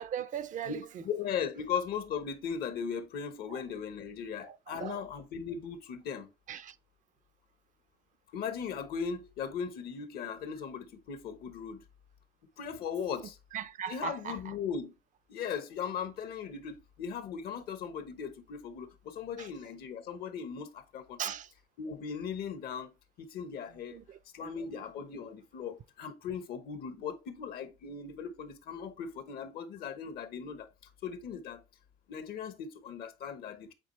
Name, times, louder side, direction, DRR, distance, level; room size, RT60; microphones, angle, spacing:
voice 1, 0.0-0.8 3.5-3.6 4.4-5.0 6.5-6.8 13.5-14.5 19.4-19.5 21.2-21.5 23.9-24.8, right 9 dB, 50° right, 0.5 m, -39 dB
voice 2, 0.6-6.3 8.3-11.8 12.6-13.4 13.9-14.9 15.3-21.2 21.8-24.0 24.3-30.7 31.0-31.6 32.1-33.7, left 7 dB, 65° left, 1.0 m, -38 dB
8.0 x 3.8 x 3.1 m
cardioid pair, 110°, 17 cm